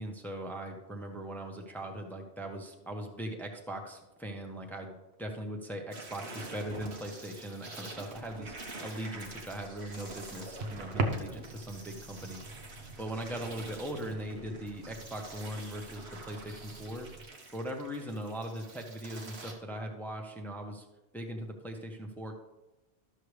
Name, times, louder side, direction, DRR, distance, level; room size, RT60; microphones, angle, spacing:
voice 1, 0.0-17.1 17.5-20.9 21.1-22.4, right 1 dB, ahead, 2 dB, 0.8 m, -40 dB
sound 1, 5.9-19.5, right 2 dB, 90° right, 1.6 m, -47 dB
sound 2, 9.1-17.3, right 2 dB, 75° right, 1.1 m, -41 dB
12.5 x 6.6 x 3.3 m, 1.0 s
omnidirectional pair, 1.1 m